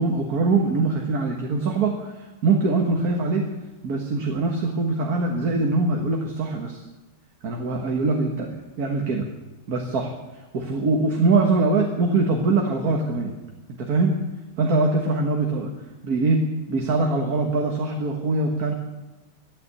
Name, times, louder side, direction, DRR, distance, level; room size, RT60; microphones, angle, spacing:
voice 1, 0.0-3.5 3.8-6.8 7.4-9.3 9.7-10.1 10.5-13.3 13.7-14.2 14.6-15.7 16.0-18.7, right 3 dB, 60° right, 1 dB, 1.9 m, -23 dB
13.0 x 12.0 x 8.2 m, 1.1 s
omnidirectional pair, 1.8 m